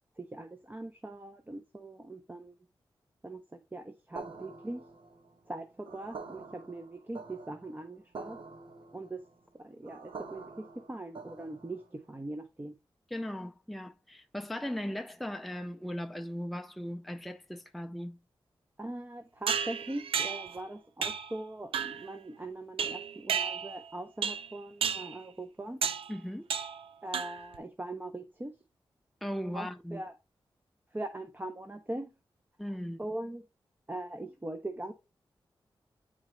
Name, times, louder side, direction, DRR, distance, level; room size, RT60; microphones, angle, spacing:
voice 1, 0.2-2.6 3.2-4.8 5.5-8.4 8.9-9.2 9.6-12.7 18.8-25.8 27.0-28.5 29.5-30.1 30.9-32.1 33.0-33.4 33.9-34.9, right 1 dB, 20° right, 0.8 m, -41 dB
sound 1, 4.2-12.0, right 4 dB, 70° right, 1.2 m, -47 dB
voice 2, 13.1-18.2 26.1-26.4 29.2-30.0 32.6-33.0, equal, ahead, 0.4 m, -38 dB
Pot Bash, 19.5-20.6 21.0-21.3 21.7-22.1 22.8-23.9 24.2-24.5 24.8-25.2 25.8-26.1 26.5-26.8 27.1-27.6, right 7 dB, 90° right, 0.5 m, -32 dB
9.4 x 3.9 x 3.2 m
wide cardioid pair, 85°, 9 cm